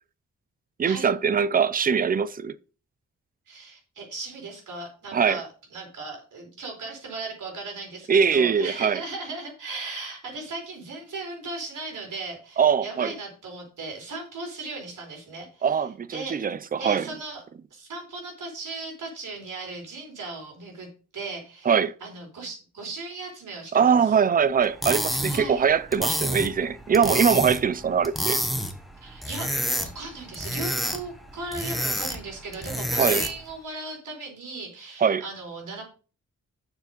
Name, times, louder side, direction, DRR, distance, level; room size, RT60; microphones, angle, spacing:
voice 1, 0.8-2.5 5.1-5.4 8.1-9.0 12.6-13.1 15.6-17.1 21.7-21.9 23.7-28.4 33.0-33.2 35.0-35.2, right 6 dB, 30° right, 0.4 m, -22 dB
voice 2, 3.5-15.8 16.1-17.4 17.7-20.9 21.1-21.7 22.0-24.2 25.3-25.7 29.0-29.5 29.8-35.8, right 3 dB, 75° right, 4.5 m, -37 dB
sound 1, 24.6-33.5, equal, ahead, 1.0 m, -29 dB
7.3 x 6.7 x 5.3 m
wide cardioid pair, 165°, 31 cm